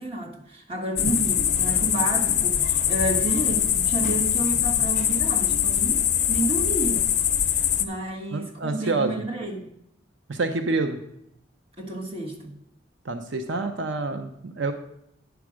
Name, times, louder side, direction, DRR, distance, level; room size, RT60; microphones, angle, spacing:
voice 1, 0.0-7.1 7.5-9.7 11.8-12.5, right 2 dB, 30° right, 0 dB, 1.4 m, -31 dB
sound 1, 1.0-7.8, left 10 dB, 40° left, 0.6 m, -23 dB
voice 2, 8.3-9.2 10.3-11.0 13.0-14.7, right 3 dB, 75° right, 7 dB, 0.6 m, -27 dB
9.3 x 4.8 x 6.2 m, 0.77 s
head